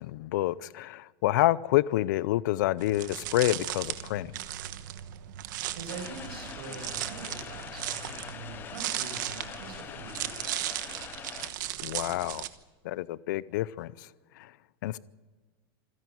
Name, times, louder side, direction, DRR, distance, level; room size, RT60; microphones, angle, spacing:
voice 1, 0.0-4.3 11.8-12.5 12.8-13.9 14.8-15.0, left 16 dB, 50° left, 0.6 m, -28 dB
sound 1, 2.8-12.5, right 14 dB, 50° right, 1.2 m, -37 dB
voice 2, 5.7-10.7, right 4 dB, 90° right, 6.5 m, -43 dB
sound 2, 5.9-11.5, left 8 dB, 15° left, 0.7 m, -43 dB
27.0 x 11.0 x 9.4 m
supercardioid pair, 180°, 13 cm